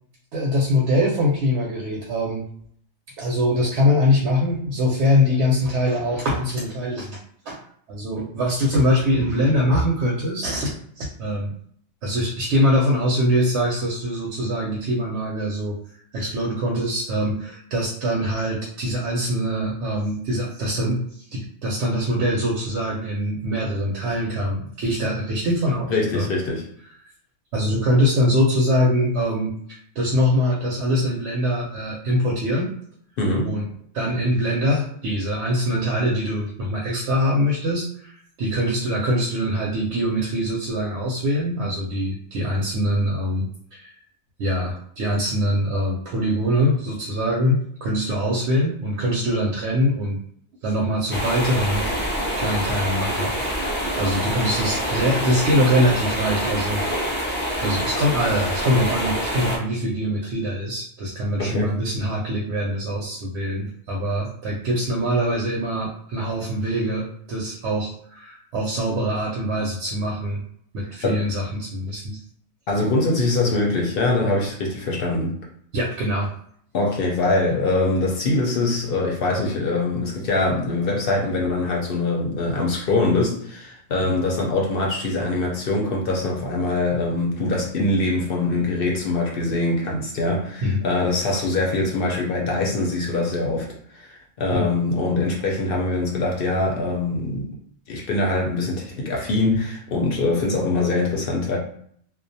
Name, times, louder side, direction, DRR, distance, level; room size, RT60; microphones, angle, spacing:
voice 1, 0.3-2.5 3.2-7.2 7.5-7.6 7.9-11.5 12.0-15.8 16.1-26.3 27.5-32.7 33.4-33.7 33.9-43.9 44.4-50.2 50.6-51.8 52.3-70.4 70.7-72.2 72.9-73.0 75.7-76.3 84.0-84.1 90.6-90.8 94.5-94.7, equal, 80° right, -2 dB, 0.9 m, -23 dB
voice 2, 25.9-26.6 33.2-33.5 61.4-61.7 71.0-71.2 72.7-75.4 76.7-93.7 93.9-97.6 97.9-101.6, left 2 dB, 60° left, -1 dB, 0.7 m, -23 dB
sound 1, 51.1-59.6, equal, 20° left, 0.3 m, -26 dB
2.3 x 2.1 x 2.6 m, 0.63 s
omnidirectional pair, 1.2 m